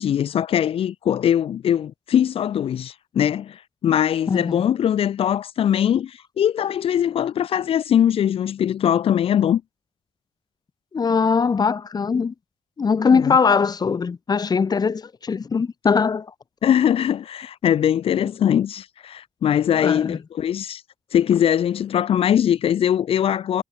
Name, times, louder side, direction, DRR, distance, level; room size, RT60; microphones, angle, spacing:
voice 1, 0.0-9.6 13.1-13.4 16.6-20.8 21.1-23.6, left 9 dB, 75° left, 0.7 m, -21 dB
voice 2, 4.3-4.6 10.9-12.3 12.8-16.3 19.8-20.2, left 5 dB, 45° left, 1.1 m, -21 dB
cardioid pair, 85°, 10 cm